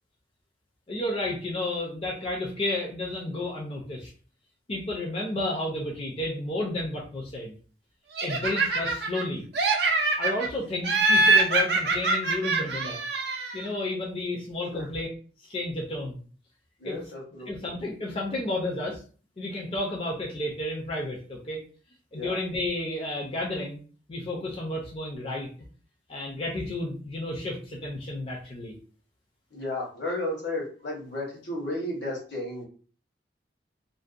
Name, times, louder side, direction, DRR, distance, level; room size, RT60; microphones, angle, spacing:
voice 1, 0.9-4.1 4.7-7.5 8.2-9.5 10.2-13.0 13.5-15.1 15.5-16.2 16.8-17.0 17.5-19.0 19.4-21.6 22.1-23.8 24.1-25.5 26.1-28.7, left 2 dB, 30° left, -2 dB, 0.4 m, -32 dB
Laughter, 8.2-9.2 9.5-10.5 10.8-13.6, right 3 dB, 65° right, 0.4 m, -24 dB
voice 2, 16.8-17.7 22.1-22.4 29.5-32.6, left 1 dB, 75° left, -1 dB, 1.0 m, -33 dB
2.5 x 2.1 x 2.4 m, 0.40 s
head